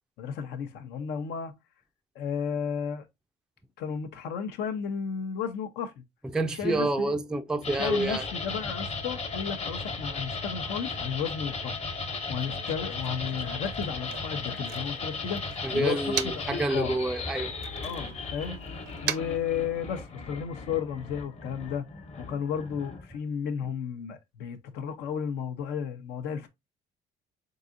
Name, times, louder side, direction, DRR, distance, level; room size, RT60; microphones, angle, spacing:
voice 1, 0.2-1.5 2.1-3.1 3.8-5.9 6.5-7.2 7.8-11.8 12.3-15.4 15.7-17.0 17.8-18.6 19.0-21.9 22.2-26.5, left 7 dB, 80° left, 0.8 m, -33 dB
voice 2, 6.3-8.2 15.6-17.5, right 2 dB, 5° right, 0.3 m, -28 dB
sound 1, 7.6-23.2, left 4 dB, 40° left, 1.1 m, -36 dB
Motor vehicle (road), 12.2-16.6 17.0-20.2, right 11 dB, 75° right, 0.6 m, -40 dB
3.9 x 3.8 x 2.6 m
cardioid pair, 110°, 17 cm